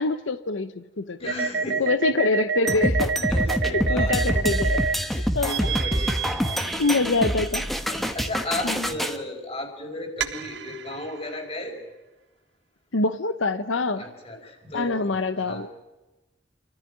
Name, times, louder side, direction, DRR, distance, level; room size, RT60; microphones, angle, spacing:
voice 1, 0.0-1.2 1.8-3.1 3.9-4.8 5.3-5.5 6.8-7.6 8.6-8.9 12.9-14.0 14.7-15.7, left 3 dB, 85° left, 11 dB, 0.9 m, -25 dB
voice 2, 1.2-1.9 3.3-4.6 5.0-6.9 7.9-11.8 14.0-15.7, left 1 dB, 30° left, 3 dB, 4.8 m, -35 dB
sound 1, 1.3-5.0 5.4-7.6 10.2-11.2, right 5 dB, 70° right, 1.5 m, -28 dB
sound 2, 2.7-9.2, equal, ahead, 1.2 m, -26 dB
27.5 x 14.0 x 9.8 m, 1.1 s
head